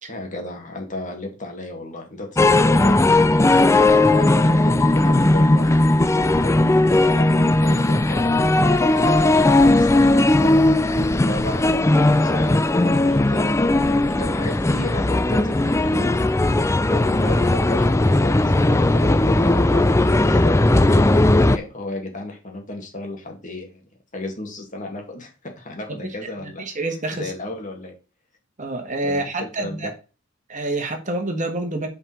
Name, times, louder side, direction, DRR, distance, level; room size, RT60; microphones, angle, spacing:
voice 1, 0.1-5.7 6.1-10.6 11.3-16.1 16.8-20.6 21.5-23.8 24.1-27.9 29.0-29.9, left 2 dB, 40° left, 2 dB, 2.2 m, -34 dB
sound 1, 2.4-21.6, left 2 dB, 15° left, 0.4 m, -17 dB
voice 2, 26.4-27.3 28.6-29.9 30.5-31.9, right 2 dB, 40° right, 4 dB, 1.5 m, -27 dB
5.5 x 5.3 x 5.5 m, 0.33 s
head